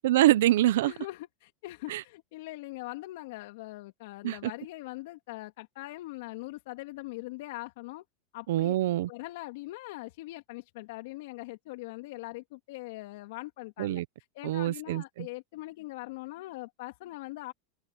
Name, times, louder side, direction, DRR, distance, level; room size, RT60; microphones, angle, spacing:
voice 1, 0.0-0.9 1.9-2.0 4.2-4.5 8.5-9.1 13.8-14.0 14.4-15.3, right 14 dB, 75° right, 0.9 m, -25 dB
voice 2, 0.8-8.0 8.3-8.7 9.1-14.0 14.3-17.5, left 19 dB, 70° left, 2.7 m, -41 dB
hypercardioid pair, 105°, 0 cm